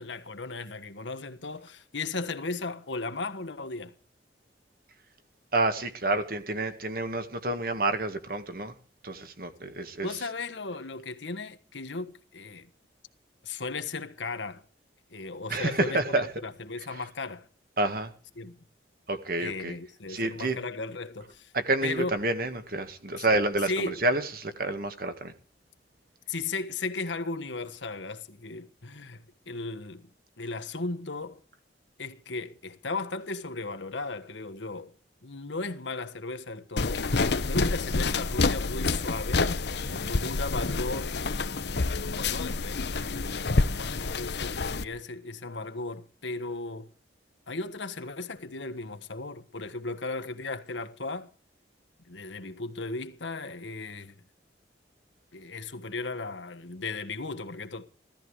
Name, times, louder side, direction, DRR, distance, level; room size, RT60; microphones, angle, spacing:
voice 1, 0.0-3.9 10.0-12.7 13.4-14.6 15.1-17.5 18.4-18.6 19.4-21.5 21.8-22.1 23.2-23.3 23.6-24.0 26.3-30.1 30.4-31.4 32.0-34.9 35.2-37.1 37.5-39.5 40.1-41.2 42.0-46.9 47.5-51.3 52.0-54.2 55.3-57.9, left 3 dB, 85° left, 1.4 m, -36 dB
voice 2, 5.5-8.7 9.0-10.1 15.5-16.3 17.8-18.1 19.1-19.7 20.1-20.6 21.5-25.3 39.9-40.2, right 2 dB, 50° right, 1.9 m, -29 dB
sound 1, 36.8-44.8, left 3 dB, 65° left, 0.9 m, -28 dB
16.5 x 13.5 x 4.9 m
head